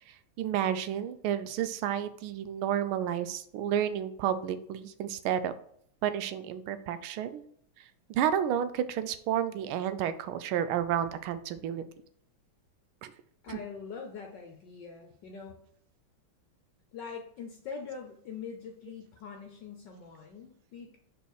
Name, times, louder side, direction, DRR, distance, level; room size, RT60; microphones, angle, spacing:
voice 1, 0.4-5.5 6.0-7.4 8.1-11.8 13.0-13.1, right 10 dB, 80° right, 12 dB, 1.4 m, -31 dB
voice 2, 13.4-15.6 16.9-21.0, left 6 dB, 65° left, 3 dB, 1.3 m, -43 dB
5.1 x 4.9 x 6.4 m, 0.65 s
omnidirectional pair, 2.3 m